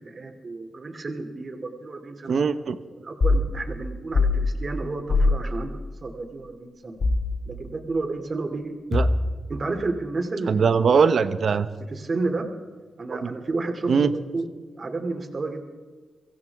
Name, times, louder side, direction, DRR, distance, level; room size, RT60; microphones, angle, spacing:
voice 1, 0.0-2.4 2.9-7.0 7.5-8.8 9.5-10.7 11.9-12.4 13.0-14.5 14.7-15.6, right 3 dB, 50° right, 4 dB, 2.7 m, -31 dB
voice 2, 2.3-2.8 8.9-9.1 10.5-11.7 13.1-13.3 13.9-14.1, right 5 dB, 65° right, 12 dB, 1.0 m, -21 dB
sound 1, 3.2-3.5 4.1-4.4 5.1-5.4 7.0-7.3 8.9-9.4, left 3 dB, 60° left, 3.2 m, -20 dB
24.0 x 15.5 x 3.6 m, 1.5 s
supercardioid pair, 50°, 0 cm